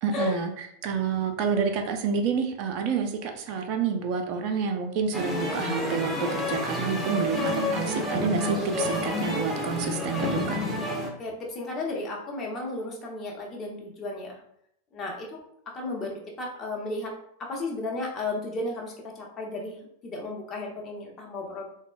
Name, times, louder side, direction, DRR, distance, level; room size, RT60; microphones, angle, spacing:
voice 1, 0.0-10.6, right 5 dB, 40° right, 4 dB, 0.4 m, -29 dB
sound 1, 5.1-11.1, left 1 dB, 5° right, 0.6 m, -29 dB
voice 2, 11.2-14.4 14.9-15.3 15.7-17.1 17.5-21.7, left 2 dB, 25° left, -1 dB, 0.8 m, -34 dB
3.6 x 2.0 x 2.5 m, 0.72 s
figure-of-eight pair, 90°, 0 cm